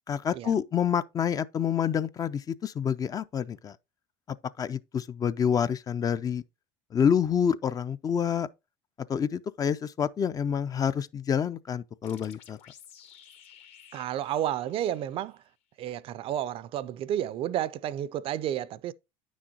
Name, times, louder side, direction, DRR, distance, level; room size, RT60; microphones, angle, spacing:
voice 1, 0.1-3.8 4.6-6.4 6.9-8.5 9.1-12.6, left 8 dB, 30° left, 0.4 m, -27 dB
sound 1, 12.0-15.5, left 9 dB, 60° left, 1.3 m, -54 dB
voice 2, 13.9-15.4 15.8-18.9, right 11 dB, 50° right, 0.4 m, -31 dB
9.3 x 6.2 x 2.8 m
supercardioid pair, 95°, 12 cm